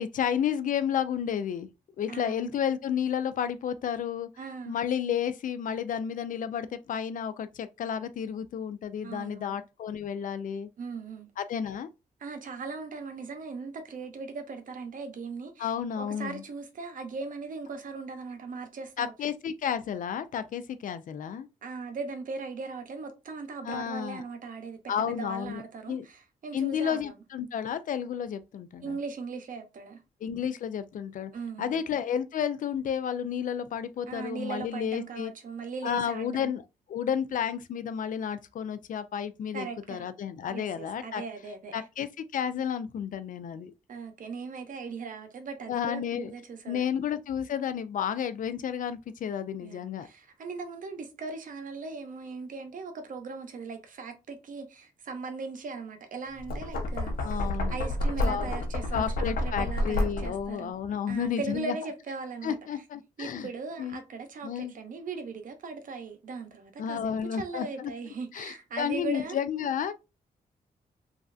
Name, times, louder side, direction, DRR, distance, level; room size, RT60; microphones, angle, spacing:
voice 1, 0.0-1.7 2.0-4.3 4.7-10.7 11.4-11.9 15.6-16.4 19.0-21.5 23.6-24.2 24.9-25.6 25.9-26.1 26.5-29.0 30.2-31.3 31.6-35.3 35.8-36.6 36.9-41.2 41.7-42.1 42.3-43.7 45.7-46.3 46.7-50.1 57.2-57.8 58.2-58.5 58.9-61.7 62.4-63.5 63.8-64.0 64.4-64.7 66.8-67.9 68.3-69.9, left 8 dB, 60° left, 0.4 m, -31 dB
voice 2, 2.1-2.5 4.4-4.8 9.0-9.6 10.8-11.3 12.2-15.7 16.0-19.1 21.6-27.2 28.8-30.0 31.3-31.8 34.1-36.5 39.5-40.0 40.5-41.8 43.9-47.0 49.6-57.4 57.7-60.8 61.1-62.6 63.2-69.4, right 4 dB, 65° right, 0.7 m, -39 dB
Knock, 56.3-60.5, left 1 dB, 80° left, 0.8 m, -29 dB
3.1 x 2.5 x 2.5 m
cardioid pair, 75°, 15 cm